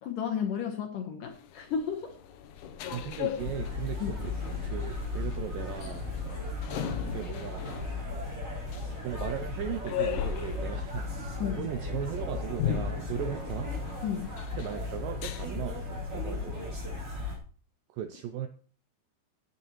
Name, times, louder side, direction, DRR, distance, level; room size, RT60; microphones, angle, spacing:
voice 1, 0.0-2.2 4.0-4.1 11.4-11.7 14.0-14.3, left 7 dB, 70° left, 4 dB, 2.2 m, -33 dB
sound 1, 1.3-15.5, left 9 dB, 85° left, 1.7 m, -38 dB
voice 2, 2.9-6.1 7.1-7.7 8.8-11.1 11.6-13.7 14.6-16.7 17.9-18.5, right 10 dB, 85° right, 8 dB, 2.0 m, -37 dB
sound 2, 3.4-17.4, left 3 dB, 20° right, 4.0 m, -36 dB
17.0 x 8.2 x 3.1 m, 0.42 s
omnidirectional pair, 4.8 m